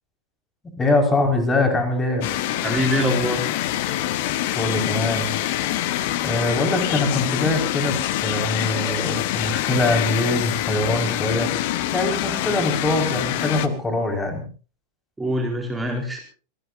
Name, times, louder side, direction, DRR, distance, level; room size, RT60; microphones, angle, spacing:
voice 1, 0.6-2.3 4.6-5.3 6.2-11.5 11.9-14.5, left 2 dB, 15° left, 4 dB, 5.3 m, -23 dB
sound 1, 2.2-13.7, left 13 dB, 50° left, 1.3 m, -25 dB
voice 2, 2.6-3.5 15.2-16.2, equal, 10° right, 1 dB, 4.2 m, -24 dB
27.5 x 19.5 x 2.7 m, 0.37 s
figure-of-eight pair, 90°, 0 cm